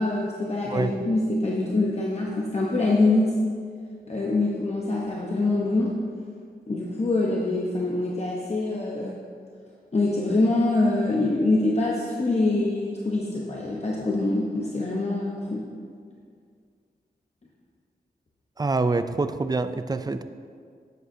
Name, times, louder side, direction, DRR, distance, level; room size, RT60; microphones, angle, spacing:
voice 1, 0.0-3.4 4.1-6.0 6.7-9.1 9.9-15.7, left 2 dB, 40° left, -3 dB, 1.0 m, -24 dB
voice 2, 18.6-20.2, right 3 dB, 25° right, 11 dB, 0.4 m, -25 dB
12.5 x 9.0 x 2.8 m, 2.1 s
wide cardioid pair, 105°, 17 cm